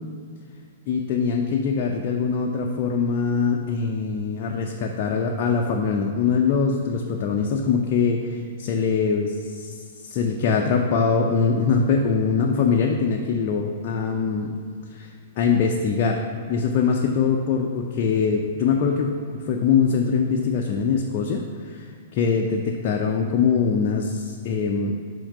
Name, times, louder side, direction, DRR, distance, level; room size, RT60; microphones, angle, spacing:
voice 1, 0.9-14.5 14.9-15.1 15.4-16.2 16.5-21.8 22.1-24.9, left 5 dB, 45° left, 1 dB, 0.6 m, -23 dB
5.7 x 5.4 x 5.4 m, 2.1 s
figure-of-eight pair, 110°, 0 cm